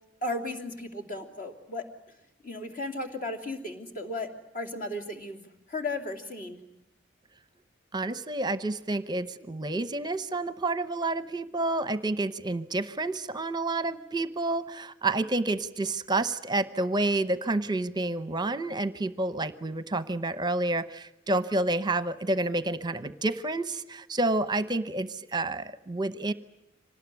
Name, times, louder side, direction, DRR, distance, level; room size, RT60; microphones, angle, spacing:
voice 1, 0.2-1.9 2.4-4.3 4.5-5.4 5.7-6.6, left 2 dB, 45° left, 5 dB, 2.9 m, -35 dB
voice 2, 7.9-26.3, right 2 dB, 20° right, 13 dB, 0.8 m, -29 dB
26.0 x 19.5 x 9.5 m, 0.90 s
head